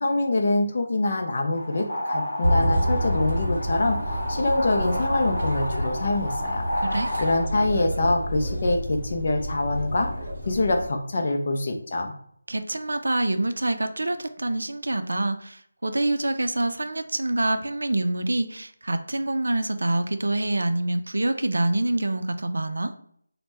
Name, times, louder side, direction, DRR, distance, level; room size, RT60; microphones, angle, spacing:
voice 1, 0.0-6.7 7.2-10.1 10.5-12.1, left 2 dB, 30° left, 3 dB, 0.4 m, -25 dB
sound 1, 1.5-7.4, left 1 dB, 45° left, 0.8 m, -31 dB
sound 2, 2.4-10.9, equal, 35° right, 0.7 m, -29 dB
voice 2, 12.5-22.9, right 2 dB, 90° right, 8 dB, 0.4 m, -26 dB
3.0 x 2.1 x 3.3 m, 0.63 s
figure-of-eight pair, 180°, 0 cm